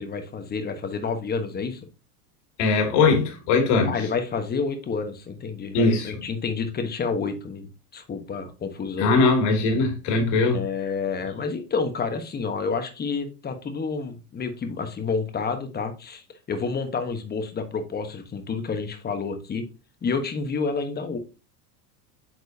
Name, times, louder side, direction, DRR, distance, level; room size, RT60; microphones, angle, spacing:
voice 1, 0.0-1.8 3.8-9.2 10.5-19.6 20.0-21.2, left 5 dB, 20° left, 1.1 m, -29 dB
voice 2, 2.6-3.9 5.7-6.1 9.0-10.6, left 3 dB, 55° left, 2.6 m, -20 dB
8.4 x 4.6 x 2.7 m
supercardioid pair, 130°, 48 cm